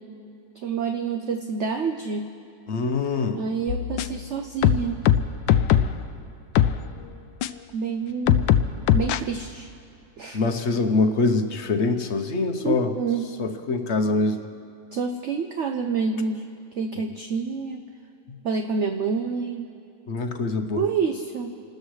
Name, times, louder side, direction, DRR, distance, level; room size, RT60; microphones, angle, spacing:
voice 1, 0.5-2.3 3.3-5.0 7.7-8.4 8.9-9.7 10.2-10.4 12.6-13.3 14.9-16.4 16.8-17.8 18.4-19.7 20.7-21.5, right 5 dB, 55° right, 4 dB, 0.9 m, -27 dB
voice 2, 2.7-3.4 10.3-12.9 13.4-14.5 20.1-20.8, left 3 dB, 50° left, 7 dB, 1.0 m, -24 dB
sound 1, 3.7-4.3 4.6-6.0 6.6-6.8 7.4-7.5 8.3-9.2, left 10 dB, 85° left, 1.2 m, -20 dB
28.5 x 13.0 x 3.2 m, 2.7 s
omnidirectional pair, 1.8 m